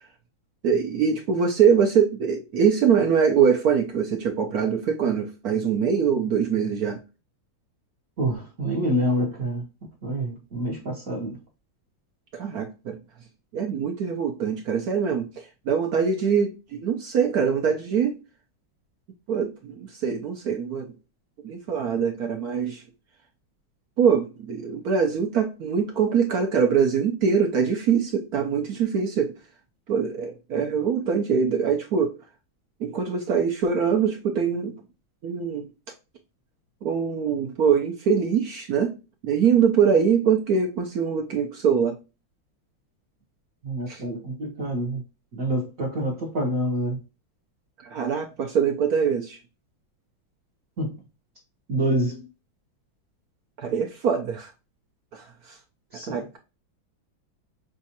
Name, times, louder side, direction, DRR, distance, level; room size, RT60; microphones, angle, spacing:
voice 1, 0.6-7.0 12.3-13.0 13.5-18.2 19.3-20.9 21.4-22.8 24.0-29.3 29.9-32.1 32.8-34.8 35.2-35.7 36.8-39.0 39.2-42.0 43.9-44.0 47.8-49.4 53.6-54.5 55.1-55.6 56.1-56.4, right 6 dB, 65° right, 0.9 m, -23 dB
voice 2, 8.2-9.7 10.0-11.4 43.6-45.0 45.3-47.0 50.8-51.0 51.7-52.2 55.9-56.2, right 1 dB, 50° right, 1.2 m, -27 dB
6.2 x 2.4 x 2.7 m
omnidirectional pair, 2.2 m